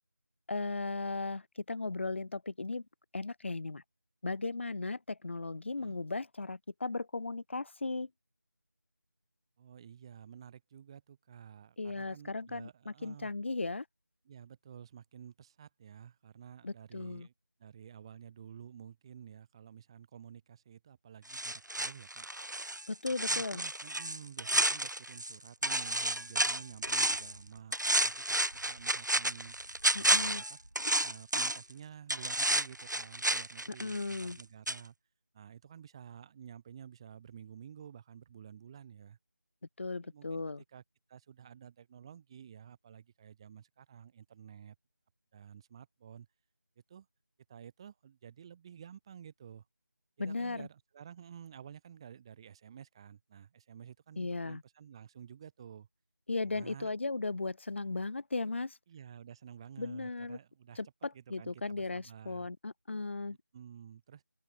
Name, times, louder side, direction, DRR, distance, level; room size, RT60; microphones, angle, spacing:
voice 1, 0.5-1.4 1.7-2.8 3.1-3.8 4.2-8.1 11.8-13.8 16.6-17.3 22.9-23.6 29.9-30.4 33.8-34.4 39.8-40.6 50.2-50.7 54.2-54.6 56.3-58.8 59.8-60.4 60.8-63.4, left 3 dB, 40° left, 5.7 m, -36 dB
voice 2, 9.6-13.3 14.2-17.3 17.6-22.3 23.3-29.6 29.9-30.6 31.0-34.9 35.3-39.2 40.0-40.4 40.7-40.8 41.1-44.8 45.3-46.3 46.9-47.1 47.5-49.6 50.2-55.9 56.4-56.9 58.9-60.8 61.1-62.5 63.5-64.2, right 8 dB, 15° right, 7.7 m, -51 dB
sound 1, 21.3-25.3 25.6-27.4 27.7-31.7 32.1-34.4 34.7-34.8, right 1 dB, 85° right, 1.3 m, -31 dB
open air
figure-of-eight pair, 170°, 10 cm